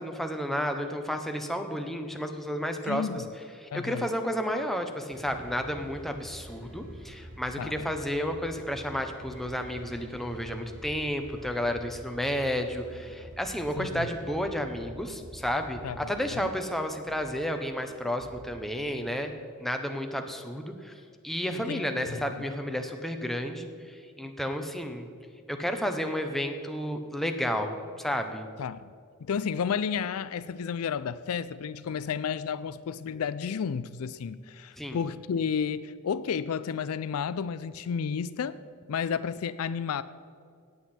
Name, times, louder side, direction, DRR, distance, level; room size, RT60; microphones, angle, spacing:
voice 1, 0.0-3.2 3.7-19.3 19.6-20.9 21.2-25.1 25.5-28.5 34.8-35.0, equal, ahead, 5 dB, 0.8 m, -32 dB
voice 2, 2.9-3.3 3.7-4.1 7.6-7.9 13.8-14.1 15.8-16.5 21.5-21.8 22.1-22.2 28.6-28.9 29.2-38.6 38.9-40.0, left 6 dB, 75° left, 15 dB, 0.4 m, -32 dB
sound 1, 5.1-19.1, right 1 dB, 60° right, 3.3 m, -47 dB
17.0 x 8.1 x 4.3 m, 2.2 s
head